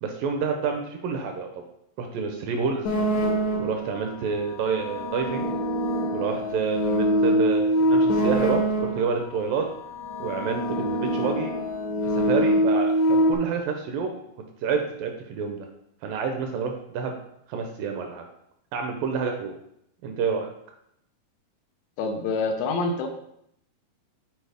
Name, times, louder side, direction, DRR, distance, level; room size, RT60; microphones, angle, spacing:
voice 1, 0.0-1.5 2.0-2.9 3.6-5.5 6.1-9.7 10.2-11.5 12.1-14.2 14.6-15.7 16.0-17.2 17.5-18.3 18.7-19.5 20.0-20.5, right 5 dB, 75° right, 3 dB, 2.2 m, -28 dB
sound 1, 2.9-3.9 4.7-9.2 9.9-13.4, equal, 65° left, 1.8 m, -24 dB
voice 2, 22.0-23.1, left 3 dB, 85° left, 5 dB, 2.8 m, -26 dB
8.9 x 4.4 x 3.4 m, 0.75 s
omnidirectional pair, 4.5 m